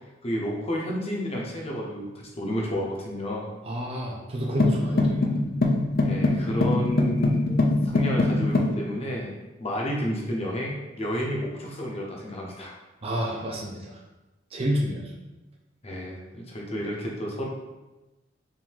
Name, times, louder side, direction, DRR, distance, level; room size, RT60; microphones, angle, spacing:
voice 1, 0.2-2.1 2.3-3.5 6.0-7.5 7.8-12.7 15.8-17.5, equal, 35° left, -2 dB, 0.9 m, -31 dB
voice 2, 3.6-5.3 13.0-13.9 14.5-15.1, equal, 30° right, -1 dB, 0.5 m, -29 dB
sound 1, 4.6-8.8, left 2 dB, 50° left, 0.5 m, -23 dB
3.7 x 2.7 x 4.5 m, 1.1 s
head